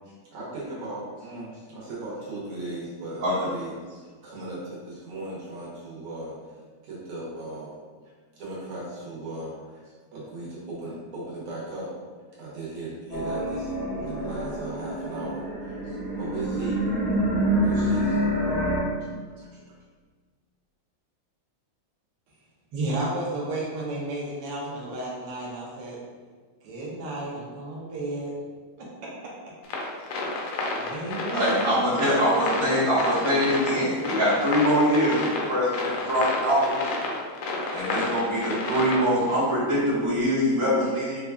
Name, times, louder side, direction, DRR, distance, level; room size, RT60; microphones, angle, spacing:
voice 1, 0.3-6.3 6.8-7.7 8.4-11.9 12.4-16.8 17.6-18.2 19.1-19.6, right 2 dB, 90° right, -7 dB, 1.9 m, -37 dB
sound 1, 13.1-18.8, equal, 55° left, 2.0 m, -27 dB
voice 2, 22.7-26.0 26.6-28.3 28.8-29.1 30.9-33.0, right 2 dB, 65° right, -4 dB, 1.3 m, -32 dB
sound 2, 29.6-39.4, left 3 dB, 85° left, 1.5 m, -30 dB
voice 3, 31.3-36.8 37.7-41.2, equal, 20° right, -10 dB, 0.9 m, -23 dB
4.9 x 2.3 x 2.3 m, 1.5 s
omnidirectional pair, 2.3 m